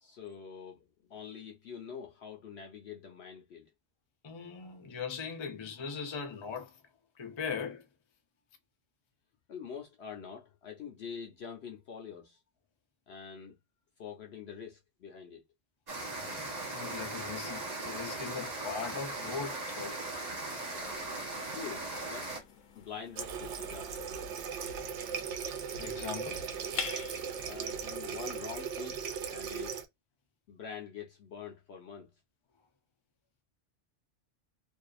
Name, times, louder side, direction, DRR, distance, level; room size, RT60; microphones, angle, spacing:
voice 1, 0.0-0.8 1.1-3.7 9.5-12.4 13.1-13.5 14.0-15.4 21.5-22.3 22.7-24.1 27.5-29.0 29.3-29.8 30.5-32.1, left 6 dB, 65° left, 0.8 m, -45 dB
voice 2, 4.2-6.7 7.2-7.8 16.2-19.9 24.8-25.0 25.7-26.4, left 6 dB, 40° left, 0.4 m, -40 dB
sound 1, 15.9-22.4, right 2 dB, 35° right, 1.2 m, -39 dB
sound 2, 20.8-28.5, left 6 dB, 90° left, 1.0 m, -47 dB
Water tap faucet, 23.2-29.9, right 7 dB, 70° right, 0.9 m, -38 dB
2.6 x 2.3 x 2.3 m
omnidirectional pair, 1.3 m